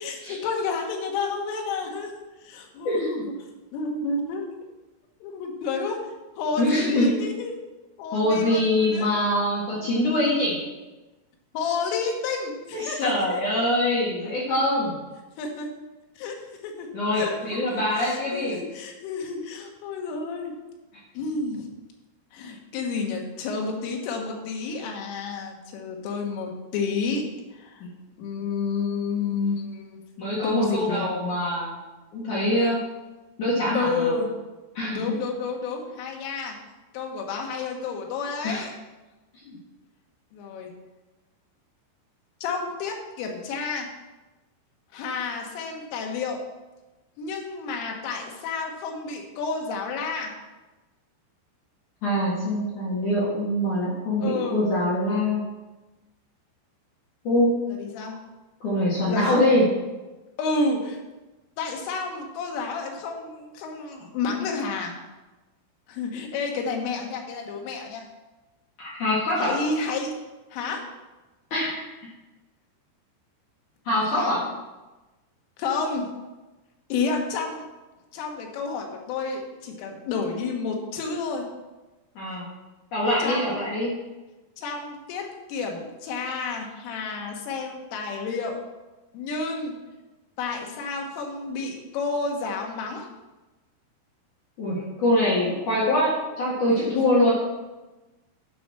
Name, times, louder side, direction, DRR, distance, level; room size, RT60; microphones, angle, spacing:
voice 1, 0.0-2.1 2.4-3.3 3.7-4.5 5.2-6.0 6.4-7.5 8.0-9.1 9.8-9.9 11.5-13.4 14.2-14.3 15.4-15.7 16.2-16.4 16.6-16.9 17.2-20.5 21.2-21.7 22.3-27.3 27.5-27.8 28.2-30.0 30.4-31.1 32.6-32.8 33.7-34.3 34.9-36.6 36.9-38.7 40.3-40.7 42.4-43.9 44.9-46.4 47.2-50.3 54.2-54.6 57.7-58.2 59.1-59.5 60.4-61.0 61.6-65.0 65.9-68.1 69.4-70.1 70.5-70.9 73.9-74.4 75.6-76.1 76.9-77.6 78.1-81.5 83.2-83.7 84.6-88.6 89.1-89.8 90.4-93.1 97.0-97.1, left 4 dB, 85° left, 1 dB, 4.0 m, -30 dB
voice 2, 2.8-3.3 6.6-7.1 8.1-10.6 12.7-15.0 16.9-18.6 27.8-27.9 30.2-31.8 32.1-32.8 33.4-34.1 34.7-35.0 38.4-38.6 39.4-39.6 52.0-55.4 57.2-57.5 58.6-59.7 68.8-69.6 71.5-71.7 73.9-74.4 82.2-82.4 82.9-83.9 94.6-97.3, left 1 dB, 50° left, -7 dB, 2.7 m, -24 dB
11.0 x 5.5 x 6.1 m, 1.1 s
omnidirectional pair, 5.6 m